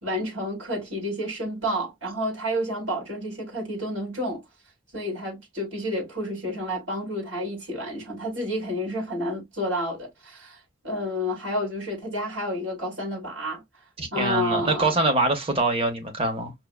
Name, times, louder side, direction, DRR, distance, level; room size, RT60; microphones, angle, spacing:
voice 1, 0.0-4.4 4.9-13.6 14.1-14.9, equal, 65° right, 2.4 m, -30 dB
voice 2, 14.0-16.5, right 2 dB, 30° right, 0.9 m, -24 dB
5.6 x 2.3 x 2.3 m
head